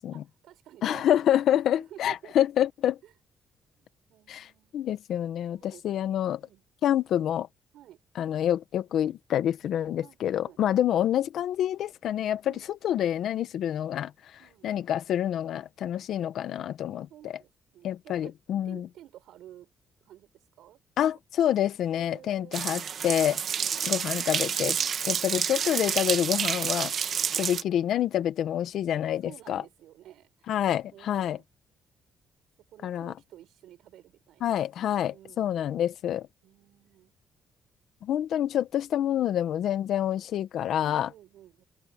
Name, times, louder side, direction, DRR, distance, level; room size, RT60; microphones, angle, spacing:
voice 1, 0.1-1.4 1.9-2.3 3.0-3.1 3.8-4.8 5.5-6.1 6.4-6.6 7.7-8.0 10.0-10.6 12.4-12.8 14.4-14.7 17.1-18.3 18.6-19.7 20.0-21.2 21.9-22.7 23.4-23.8 24.8-25.3 27.3-27.5 29.2-30.5 30.9-31.4 32.7-34.6 35.1-35.6 36.4-37.1 38.8-38.9 40.8-41.6, right 12 dB, 80° right, 6.4 m, -52 dB
voice 2, 0.8-3.0 4.3-4.5 4.7-6.4 6.8-7.5 8.2-12.5 12.8-14.1 14.6-17.3 17.8-18.9 21.0-23.4 23.8-24.8 25.1-26.9 27.4-29.6 30.5-31.4 32.8-33.1 34.4-36.2 38.0-41.1, left 11 dB, 75° left, 1.3 m, -27 dB
sound 1, 22.5-27.6, right 7 dB, 55° right, 1.7 m, -29 dB
cardioid pair, 90°, 0 cm